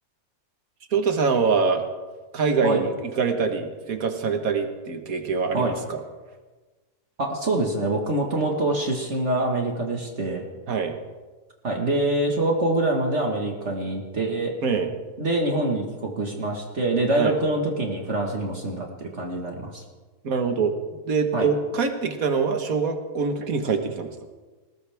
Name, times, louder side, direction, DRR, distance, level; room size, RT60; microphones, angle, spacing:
voice 1, 0.9-1.8 2.3-6.0 10.7-10.9 14.6-14.9 17.1-17.4 20.2-20.7 21.1-24.1, right 5 dB, 65° right, 6 dB, 1.9 m, -24 dB
voice 2, 7.2-10.5 11.6-14.5 15.2-19.8 21.3-21.5, right 2 dB, 45° right, 1 dB, 2.0 m, -25 dB
21.0 x 18.5 x 3.5 m, 1.3 s
omnidirectional pair, 1.6 m